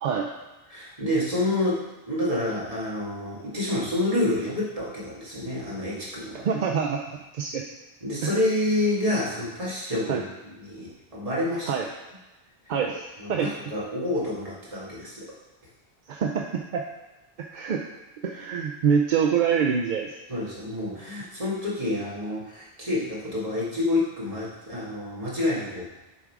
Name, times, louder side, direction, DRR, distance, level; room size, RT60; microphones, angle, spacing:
voice 1, 0.7-6.5 8.0-11.7 13.2-15.3 20.3-25.8, left 1 dB, 35° right, -7 dB, 1.9 m, -28 dB
voice 2, 6.4-7.0 7.3-7.6 8.2-8.4 10.1-10.2 11.7-11.9 12.7-13.5 16.1-16.8 17.4-17.8 18.2-20.2, right 6 dB, 60° right, 1 dB, 0.6 m, -25 dB
7.2 x 3.7 x 4.6 m, 1.1 s
omnidirectional pair, 1.1 m